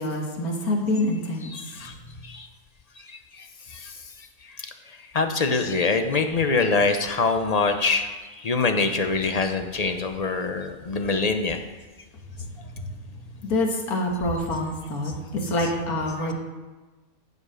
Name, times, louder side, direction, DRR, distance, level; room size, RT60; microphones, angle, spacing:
voice 1, 0.0-1.5 12.5-12.9 13.4-16.3, left 1 dB, 85° left, 1 dB, 2.0 m, -26 dB
voice 2, 1.4-2.0 2.2-2.5 3.0-11.6 15.0-15.1, left 4 dB, 35° left, 7 dB, 0.7 m, -25 dB
14.5 x 5.0 x 6.4 m, 1.3 s
omnidirectional pair, 1.5 m